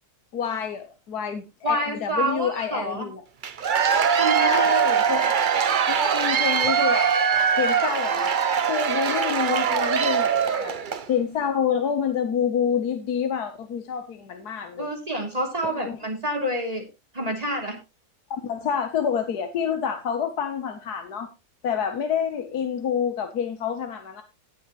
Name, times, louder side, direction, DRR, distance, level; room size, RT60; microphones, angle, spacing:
voice 1, 0.3-3.2 4.4-5.3 5.9-7.1 7.6-8.3 8.7-10.8 11.1-14.9 15.6-16.0 18.3-21.3 21.6-24.2, left 8 dB, 75° left, 7 dB, 1.6 m, -27 dB
voice 2, 1.6-3.1 4.2-4.7 14.8-16.8 17.1-17.8, right 1 dB, 20° right, 1 dB, 3.2 m, -28 dB
Cheering / Applause / Crowd, 3.4-11.1, right 7 dB, 50° right, 0.6 m, -22 dB
17.5 x 7.0 x 3.1 m, 0.26 s
omnidirectional pair, 1.7 m